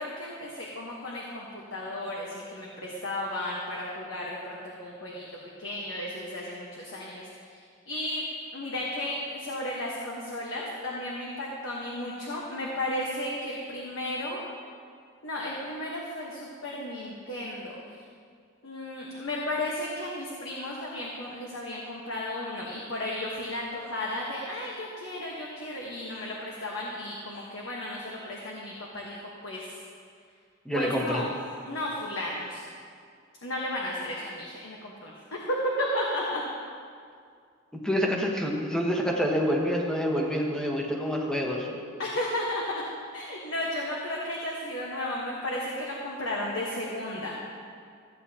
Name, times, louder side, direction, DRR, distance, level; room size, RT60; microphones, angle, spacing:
voice 1, 0.0-5.2 5.6-7.6 7.9-8.2 8.5-14.4 15.2-17.8 18.6-29.7 30.7-31.3 31.6-32.6 33.4-36.4 42.0-42.6 43.1-47.4, left 1 dB, 75° left, -3 dB, 1.2 m, -34 dB
voice 2, 30.6-31.2 37.8-41.8, equal, 5° left, -1 dB, 1.1 m, -27 dB
14.5 x 8.7 x 2.8 m, 2.2 s
head